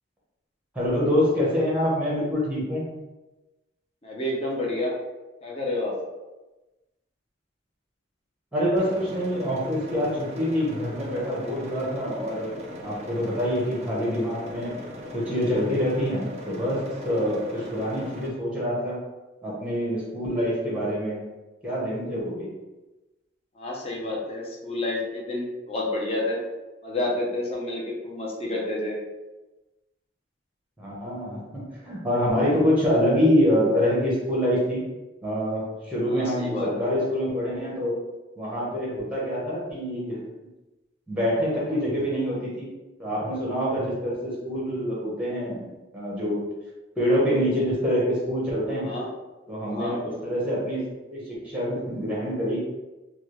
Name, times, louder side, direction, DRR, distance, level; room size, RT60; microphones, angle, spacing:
voice 1, 0.7-2.9 8.5-12.5 12.8-14.7 15.1-19.0 19.4-21.2 21.6-22.5 30.8-34.8 35.2-38.0 38.4-40.2 41.1-42.7 43.0-46.5 47.0-48.9 49.5-50.8 51.1-52.6, equal, 5° right, -6 dB, 0.8 m, -26 dB
voice 2, 4.0-4.9 5.4-5.9 17.2-17.7 23.6-26.4 26.8-29.0 36.1-36.9 48.7-49.1 49.6-50.0, left 2 dB, 30° left, -3 dB, 0.7 m, -30 dB
sound 1, 8.8-18.3, left 1 dB, 35° right, 0.4 m, -39 dB
3.2 x 2.4 x 3.0 m, 1.1 s
head